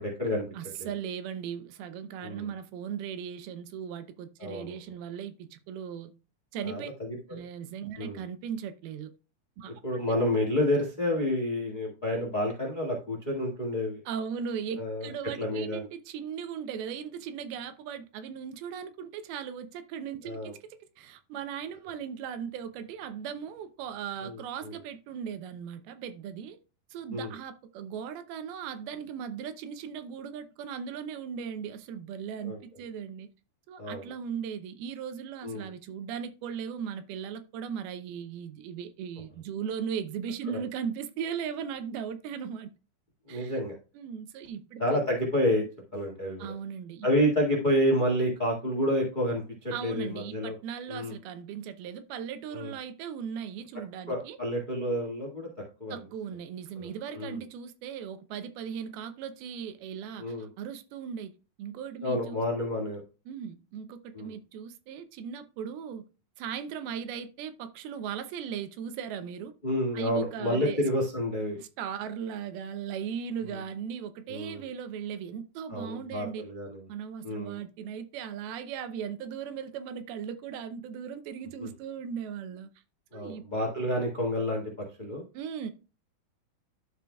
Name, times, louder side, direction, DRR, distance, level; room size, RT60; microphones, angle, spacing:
voice 1, 0.0-0.4 0.8-0.9 2.2-2.5 4.4-4.7 6.6-7.4 8.0-8.2 9.8-14.0 14.8-15.1 15.4-15.8 20.2-20.5 24.2-24.7 27.1-27.3 32.4-32.6 33.8-34.1 35.4-35.7 40.5-40.6 43.3-43.8 44.8-45.6 45.9-46.5 47.0-50.5 50.9-51.1 52.5-52.7 54.1-55.5 55.8-56.0 56.8-57.4 60.2-60.5 62.0-63.0 64.1-64.3 69.6-71.6 73.4-73.6 74.3-74.6 75.7-76.8 77.2-77.6 81.6-81.7 83.1-84.6 85.0-85.2, left 1 dB, 60° left, 0.4 m, -29 dB
voice 2, 0.5-6.1 6.5-6.9 7.3-9.1 9.6-9.8 14.1-26.6 26.9-33.3 33.7-42.7 43.3-43.5 44.0-44.8 46.4-47.1 49.7-54.4 55.9-61.3 61.6-62.4 63.3-66.0 66.4-69.5 69.9-70.8 71.6-76.5 76.9-82.7 83.1-83.5 85.3-85.7, right 7 dB, 85° right, 2.6 m, -38 dB
12.0 x 4.8 x 2.3 m
omnidirectional pair, 4.3 m